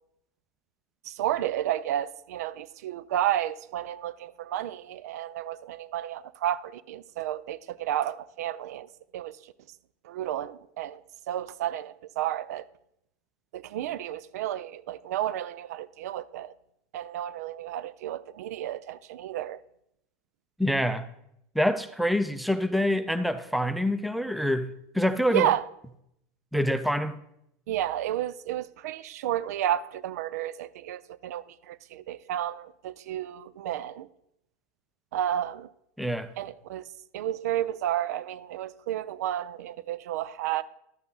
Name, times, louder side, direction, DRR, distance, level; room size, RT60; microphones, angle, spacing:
voice 1, 1.0-9.4 10.0-11.0 11.3-12.6 13.5-16.5 16.9-19.6 25.3-25.6 27.7-34.1 35.1-35.7 36.4-36.9 37.1-40.6, right 12 dB, 90° right, 0.5 m, -31 dB
voice 2, 20.6-21.1 21.5-25.5 26.5-27.2 36.0-36.3, equal, ahead, 0.6 m, -26 dB
12.5 x 8.3 x 3.9 m
supercardioid pair, 130°, 8 cm